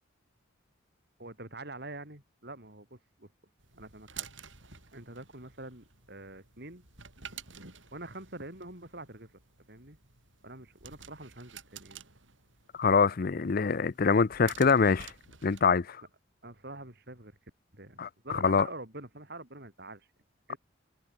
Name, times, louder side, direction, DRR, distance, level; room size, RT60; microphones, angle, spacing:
voice 1, 1.2-3.3 3.7-4.3 4.9-6.8 7.9-9.3 9.7-10.0 10.4-12.0 16.4-17.4 17.7-20.1 20.5-20.6, right 2 dB, 55° right, 5.8 m, -45 dB
sound 1, 3.6-15.6, right 8 dB, 70° right, 6.8 m, -51 dB
voice 2, 12.8-15.1 15.4-16.0 18.0-18.1 18.4-18.7, left 5 dB, 45° left, 0.5 m, -24 dB
open air
head